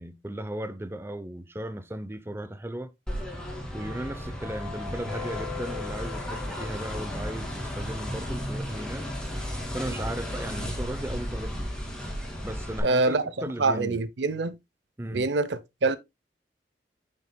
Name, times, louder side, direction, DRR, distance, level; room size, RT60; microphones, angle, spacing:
voice 1, 0.0-2.9 3.7-9.1 9.7-11.7 12.4-14.0 15.0-15.3, right 1 dB, 15° right, 0.6 m, -36 dB
sound 1, 3.1-12.8, left 1 dB, 5° left, 2.3 m, -34 dB
voice 2, 12.8-13.2 13.6-14.6 15.1-16.0, right 3 dB, 80° right, 0.7 m, -25 dB
8.6 x 6.8 x 2.2 m
head